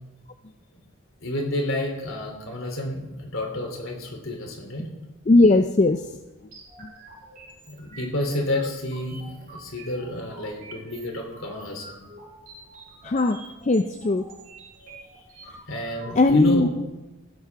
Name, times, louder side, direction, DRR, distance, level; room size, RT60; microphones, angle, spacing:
voice 1, 1.2-4.9 7.7-12.0 15.7-16.7, left 1 dB, 60° left, 2 dB, 3.3 m, -30 dB
voice 2, 5.3-6.1 13.0-14.2 16.2-16.7, left 2 dB, 30° left, 7 dB, 0.4 m, -19 dB
sound 1, 6.5-16.1, right 2 dB, 40° right, 5.6 m, -46 dB
15.5 x 13.0 x 3.6 m, 1.0 s
head